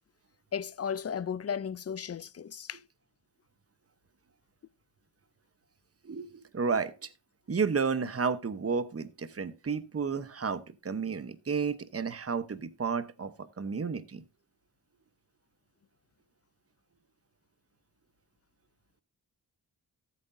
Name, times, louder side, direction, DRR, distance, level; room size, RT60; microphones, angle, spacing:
voice 1, 0.5-2.8, left 7 dB, 40° left, 0.5 m, -35 dB
voice 2, 6.0-7.1 7.5-14.2, right 5 dB, 40° right, 0.9 m, -32 dB
14.0 x 8.4 x 2.7 m
wide cardioid pair, 70°, 39 cm